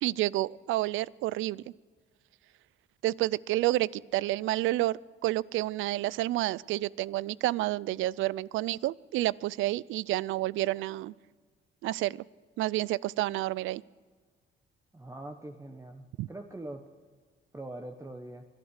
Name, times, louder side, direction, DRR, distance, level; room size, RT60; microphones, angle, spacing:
voice 1, 0.0-1.6 3.0-11.1 11.8-12.2 12.6-13.8 16.2-16.3, right 16 dB, 85° right, 23 dB, 0.4 m, -29 dB
voice 2, 14.9-16.8 17.5-18.4, right 1 dB, 15° right, 5 dB, 1.1 m, -43 dB
25.0 x 8.7 x 6.4 m, 1.5 s
cardioid pair, 90°, 20 cm